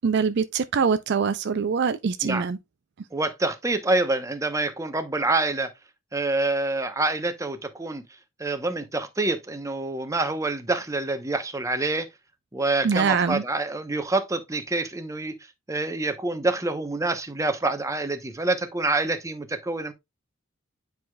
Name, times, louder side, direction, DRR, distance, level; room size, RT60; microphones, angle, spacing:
voice 1, 0.0-2.6 12.8-13.4, right 6 dB, 55° right, 0.4 m, -23 dB
voice 2, 3.1-5.7 6.1-8.0 8.4-12.1 12.5-15.3 15.7-19.9, right 2 dB, 15° right, 0.7 m, -26 dB
9.3 x 4.7 x 2.2 m
head